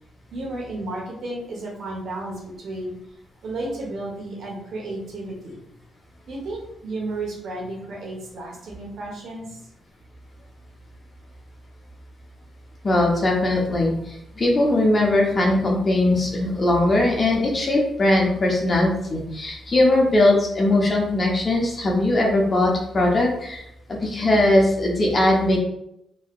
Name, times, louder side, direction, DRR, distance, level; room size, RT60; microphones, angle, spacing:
voice 1, 0.3-2.9 3.4-5.6 6.3-9.6, right 2 dB, 70° right, -2 dB, 1.1 m, -33 dB
voice 2, 12.8-23.6 23.9-25.6, left 1 dB, 35° left, -1 dB, 0.9 m, -20 dB
3.2 x 2.8 x 2.4 m, 0.79 s
cardioid pair, 80°, 0 cm